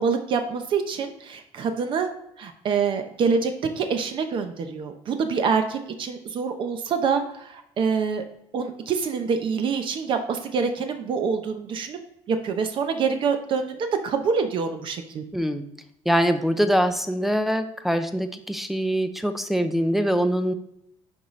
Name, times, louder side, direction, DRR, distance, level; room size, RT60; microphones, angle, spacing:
voice 1, 0.0-2.1 2.4-8.2 8.5-12.0 12.3-15.2, right 5 dB, 45° right, 7 dB, 0.7 m, -26 dB
voice 2, 15.3-15.7 16.1-20.5, equal, ahead, 7 dB, 0.4 m, -23 dB
10.5 x 4.1 x 3.1 m, 0.78 s
cardioid pair, 160°, 12 cm